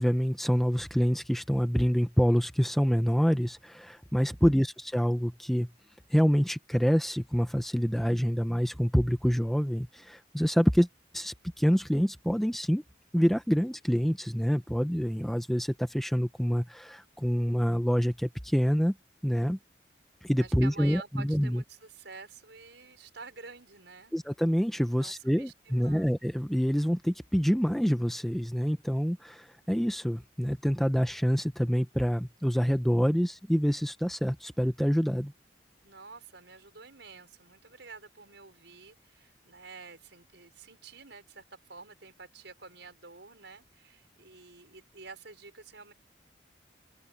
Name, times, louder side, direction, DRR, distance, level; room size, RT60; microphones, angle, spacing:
voice 1, 0.0-5.7 6.1-10.9 11.1-12.8 13.1-19.0 19.2-19.6 20.2-21.6 24.1-35.3, equal, ahead, 0.9 m, -26 dB
voice 2, 4.4-4.7 20.4-24.1 25.0-26.1 35.8-45.9, right 4 dB, 70° right, 5.4 m, -49 dB
open air
head